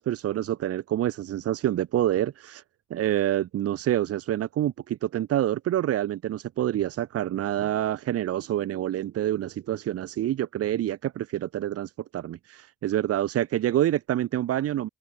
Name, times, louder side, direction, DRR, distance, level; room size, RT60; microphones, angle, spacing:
voice 1, 0.0-2.6 2.9-14.9, right 12 dB, 50° right, 0.6 m, -27 dB
cardioid pair, 90°, 30 cm